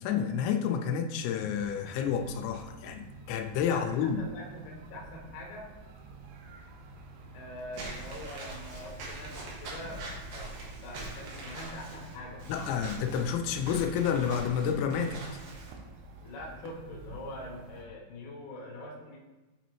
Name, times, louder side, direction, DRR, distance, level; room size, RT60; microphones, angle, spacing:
voice 1, 0.0-4.2 12.5-15.2, left 7 dB, 90° left, 5 dB, 2.8 m, -30 dB
sound 1, 1.6-17.8, right 2 dB, 85° right, 3.0 m, -49 dB
voice 2, 3.7-5.7 7.3-12.7 16.2-19.2, left 1 dB, 70° left, -3 dB, 1.9 m, -44 dB
Walk footsteps / Squeak, 7.7-15.7, right 2 dB, 70° right, 2.3 m, -43 dB
7.9 x 4.0 x 3.0 m, 1.1 s
omnidirectional pair, 5.1 m